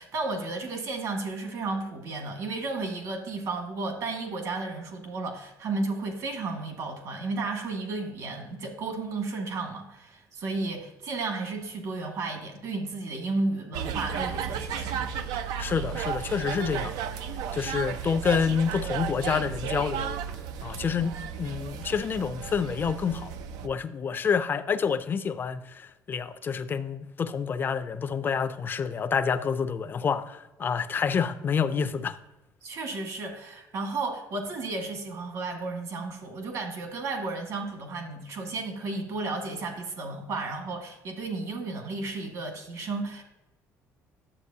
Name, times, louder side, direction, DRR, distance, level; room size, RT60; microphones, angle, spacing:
voice 1, 0.0-15.1 32.6-43.2, right 3 dB, 65° right, 1.8 m, -33 dB
sound 1, 13.7-23.7, right 8 dB, 90° right, 0.5 m, -34 dB
voice 2, 15.6-16.9 17.5-20.2 20.6-23.3 23.6-32.2, left 6 dB, 35° left, 0.5 m, -28 dB
9.7 x 7.3 x 2.8 m
cardioid pair, 120°, 6 cm